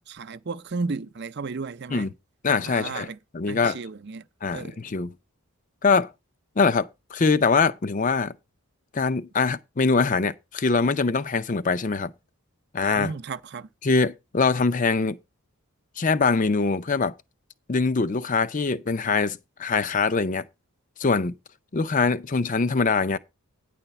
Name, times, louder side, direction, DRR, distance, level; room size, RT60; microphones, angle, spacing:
voice 1, 0.0-2.1 2.6-3.2 3.5-4.2 4.5-4.8 12.9-13.7, right 4 dB, 50° right, 0.5 m, -34 dB
voice 2, 2.4-3.1 3.3-3.8 4.4-5.1 5.8-6.1 6.6-8.3 8.9-12.1 12.7-13.1 13.8-15.2 16.0-17.1 17.7-20.4 21.0-21.3 21.7-23.2, left 4 dB, 35° left, 0.5 m, -23 dB
9.9 x 4.2 x 6.9 m
head